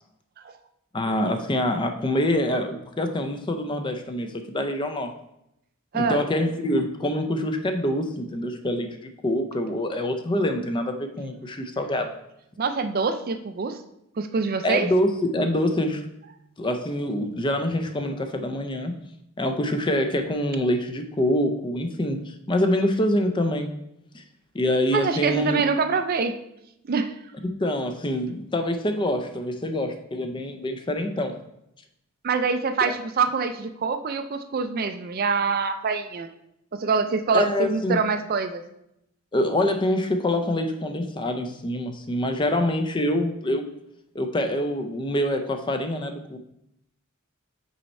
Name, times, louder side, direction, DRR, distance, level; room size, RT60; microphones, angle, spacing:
voice 1, 0.9-5.1 5.9-12.1 14.6-16.0 16.6-19.0 19.4-23.7 24.1-24.2 24.5-25.6 27.4-31.3 32.8-32.9 37.3-38.0 39.3-43.7 44.1-46.4, left 1 dB, 20° left, 6 dB, 0.5 m, -25 dB
voice 2, 12.6-13.8 14.2-14.9 24.9-26.3 26.9-27.1 32.2-36.3 36.7-38.6, right 5 dB, 45° right, 8 dB, 0.4 m, -25 dB
5.5 x 4.3 x 4.2 m, 0.80 s
head